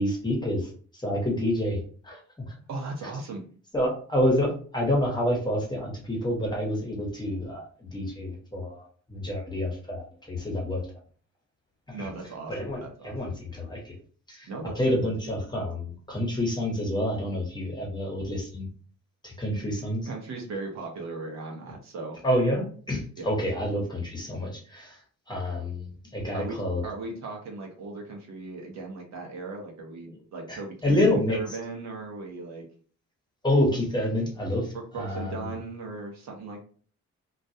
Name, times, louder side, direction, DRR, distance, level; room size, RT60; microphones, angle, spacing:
voice 1, 0.0-2.2 3.7-10.8 11.9-12.1 12.5-13.9 14.3-14.5 14.8-18.7 19.2-20.1 22.2-25.0 25.3-26.8 30.1-30.2 30.5-31.4 33.4-35.5, left 1 dB, 15° left, -2 dB, 1.0 m, -28 dB
voice 2, 2.7-3.4 11.9-13.4 14.5-15.3 20.1-22.2 23.2-23.3 26.3-26.6 26.8-32.7 34.7-36.6, right 3 dB, 60° right, 1 dB, 0.7 m, -37 dB
2.3 x 2.2 x 2.7 m, 0.43 s
cardioid pair, 90°, 30 cm